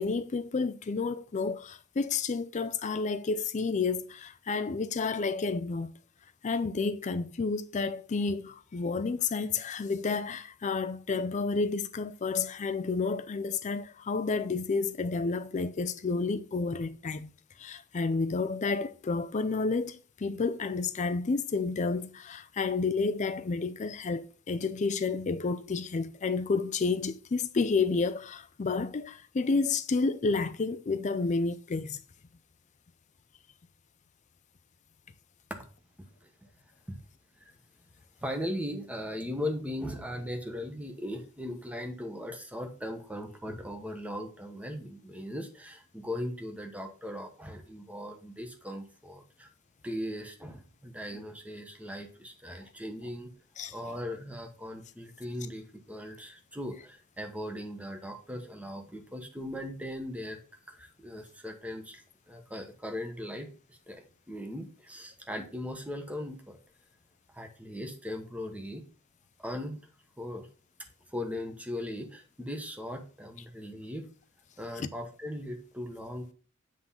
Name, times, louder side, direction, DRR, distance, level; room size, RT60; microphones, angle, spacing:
voice 1, 0.0-5.9 6.4-17.3 17.6-32.0 53.6-53.7, left 4 dB, 35° left, 0.4 m, -30 dB
voice 2, 38.2-49.5 49.8-53.3 53.7-60.4 60.7-66.6 67.3-68.8 69.4-69.9 70.2-70.5 71.1-74.1 74.6-76.3, left 1 dB, 5° right, 1.1 m, -39 dB
7.8 x 3.7 x 5.6 m
head